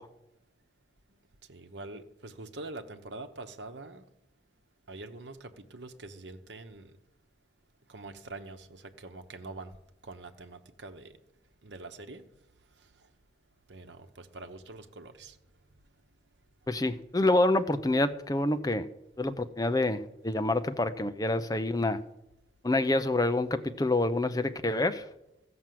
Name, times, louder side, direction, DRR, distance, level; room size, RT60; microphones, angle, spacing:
voice 1, 1.5-4.0 4.9-6.9 7.9-9.7 10.0-11.2 11.6-12.2 13.7-15.4, right 2 dB, 85° right, 6 dB, 1.0 m, -44 dB
voice 2, 16.7-18.9 19.2-22.0 22.6-25.0, left 2 dB, 20° left, 9 dB, 0.6 m, -27 dB
14.5 x 6.0 x 7.6 m, 0.86 s
head